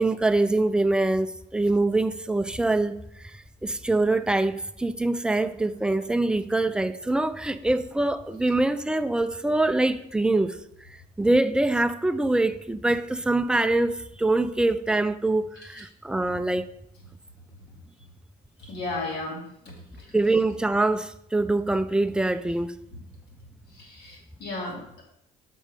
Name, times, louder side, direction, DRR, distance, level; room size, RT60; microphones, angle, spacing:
voice 1, 0.0-10.6 10.9-16.7 20.1-22.7, right 2 dB, 5° right, 0.4 m, -24 dB
voice 2, 18.7-20.1 22.9-23.0 23.7-25.0, left 2 dB, 75° left, 2.7 m, -35 dB
6.1 x 4.9 x 5.5 m
cardioid pair, 110°, 17 cm